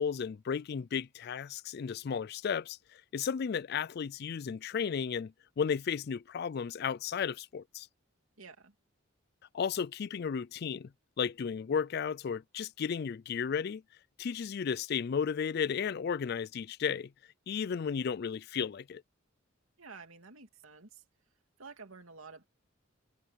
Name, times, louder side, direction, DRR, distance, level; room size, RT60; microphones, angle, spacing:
voice 1, 0.0-7.9 9.5-10.9 11.2-13.8 14.2-17.1 17.5-19.0, left 6 dB, 50° left, 0.3 m, -34 dB
voice 2, 8.4-8.7 19.8-21.0 21.6-22.4, right 4 dB, 85° right, 2.8 m, -50 dB
head